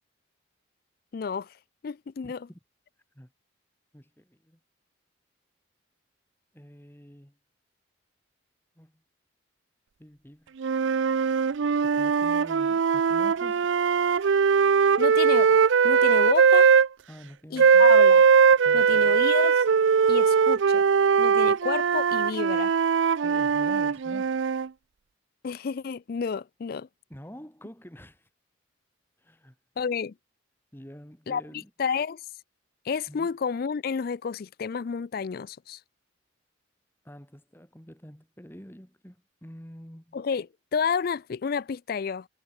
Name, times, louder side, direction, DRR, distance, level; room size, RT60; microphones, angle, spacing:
voice 1, 1.1-1.5 1.8-2.5 15.0-15.5 15.8-16.7 17.5-18.2 18.7-19.6 20.1-20.8 21.2-22.7 25.4-26.9 29.8-30.1 31.3-31.4 31.8-32.2 32.9-35.8 40.1-42.3, left 6 dB, 50° left, 0.4 m, -30 dB
voice 2, 2.2-2.6 3.1-3.3 3.9-4.6 6.5-7.3 8.8-8.9 10.0-10.5 11.8-13.7 17.1-17.9 18.6-19.2 23.2-24.4 27.1-28.3 29.2-29.5 30.7-31.7 33.1-33.3 37.0-40.2, equal, 10° left, 2.9 m, -47 dB
sound 1, 10.6-16.9 17.6-24.7, right 6 dB, 70° right, 0.4 m, -20 dB
head